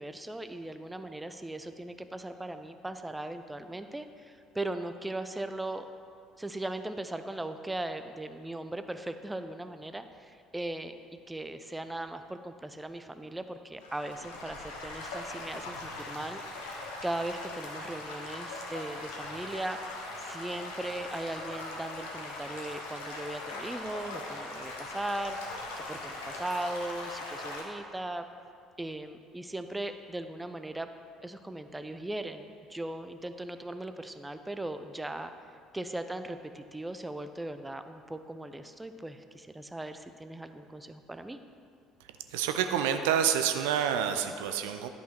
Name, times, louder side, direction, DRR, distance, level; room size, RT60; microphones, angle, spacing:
voice 1, 0.0-5.9 6.4-10.9 11.3-16.8 17.0-28.3 28.8-30.9 31.2-35.3 35.7-41.4, right 1 dB, 10° right, 9 dB, 0.5 m, -38 dB
Stream / Gurgling / Trickle dribble, 13.8-27.6, left 2 dB, 70° left, 1.0 m, -40 dB
voice 2, 42.3-44.9, right 8 dB, 70° right, 8 dB, 0.4 m, -28 dB
10.5 x 5.5 x 4.4 m, 2.3 s
figure-of-eight pair, 55°, 0 cm